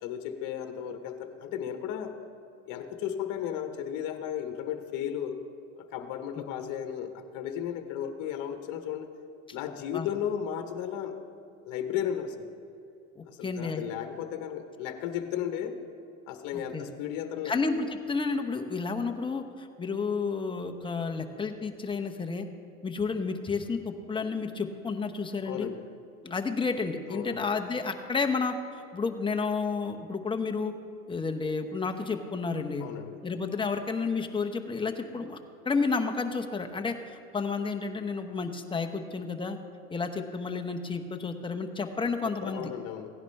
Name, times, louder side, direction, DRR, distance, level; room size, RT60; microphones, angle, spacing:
voice 1, 0.0-2.2 2.7-5.4 5.8-9.1 9.5-11.2 11.6-12.5 13.3-15.8 16.3-17.8 25.5-25.8 27.1-27.4 32.8-33.2 42.2-43.1, left 9 dB, 50° left, 7 dB, 1.2 m, -35 dB
voice 2, 13.2-13.8 16.7-16.8 17.4-22.5 22.8-25.7 26.2-28.6 28.9-30.7 31.1-32.9 33.2-35.4 35.6-39.6 39.9-42.7, left 4 dB, 10° left, 4 dB, 0.8 m, -31 dB
16.5 x 10.5 x 3.4 m, 2.6 s
hypercardioid pair, 95°, 41 cm